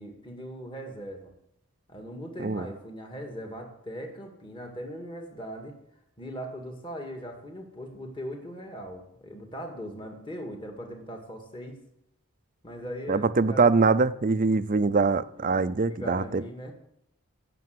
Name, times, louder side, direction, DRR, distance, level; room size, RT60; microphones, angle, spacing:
voice 1, 0.0-1.3 1.9-5.8 6.2-11.8 12.6-14.1 15.3-16.7, equal, 20° left, 3 dB, 2.0 m, -40 dB
voice 2, 13.1-16.4, right 4 dB, 40° right, 13 dB, 0.5 m, -23 dB
17.0 x 7.0 x 7.8 m, 0.78 s
head